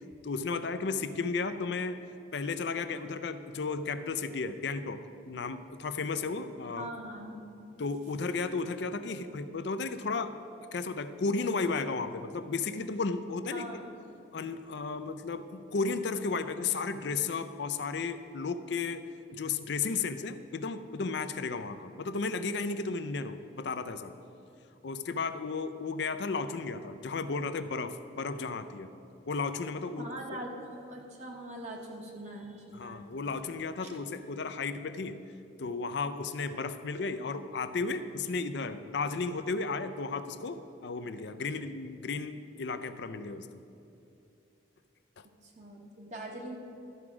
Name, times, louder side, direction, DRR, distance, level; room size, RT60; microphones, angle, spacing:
voice 1, 0.2-2.0 2.3-6.9 7.8-10.4 10.7-13.8 14.3-19.1 19.3-24.1 24.8-28.9 29.3-30.1 32.7-35.2 35.6-43.5 45.2-45.3, left 4 dB, 60° left, 11 dB, 0.4 m, -34 dB
voice 2, 6.8-7.4 13.5-13.8 30.0-33.1 45.4-46.6, right 1 dB, 35° right, 0 dB, 1.0 m, -42 dB
13.0 x 4.8 x 6.0 m, 2.7 s
head